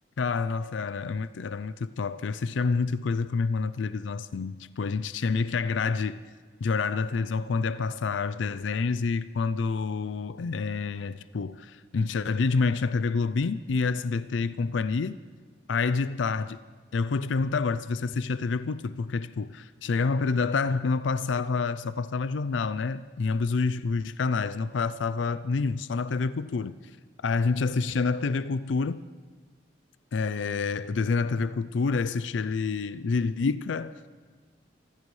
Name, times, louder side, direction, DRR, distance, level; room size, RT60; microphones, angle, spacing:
voice 1, 0.2-6.2 6.6-15.2 15.7-16.6 16.9-26.8 27.2-29.0 30.1-34.1, left 4 dB, 90° left, 0.4 m, -28 dB
24.5 x 15.5 x 3.2 m
head